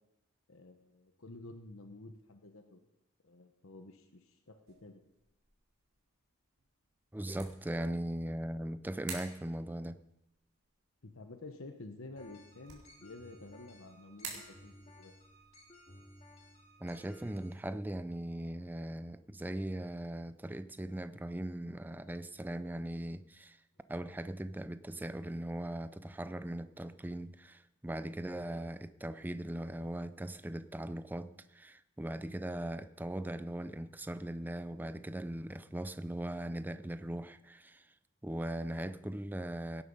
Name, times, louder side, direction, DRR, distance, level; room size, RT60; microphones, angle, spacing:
voice 1, 0.5-2.8 3.2-5.0 11.0-15.1, left 2 dB, 65° left, 6 dB, 1.1 m, -51 dB
sound 1, 4.7-18.8, right 5 dB, 85° right, 4.1 m, -54 dB
voice 2, 7.1-10.0 16.8-23.6 23.9-37.9 38.2-39.8, right 1 dB, 10° right, 13 dB, 0.4 m, -39 dB
sound 2, 12.2-17.5, left 1 dB, 30° left, 2.5 m, -57 dB
17.5 x 10.0 x 5.4 m, 0.92 s
head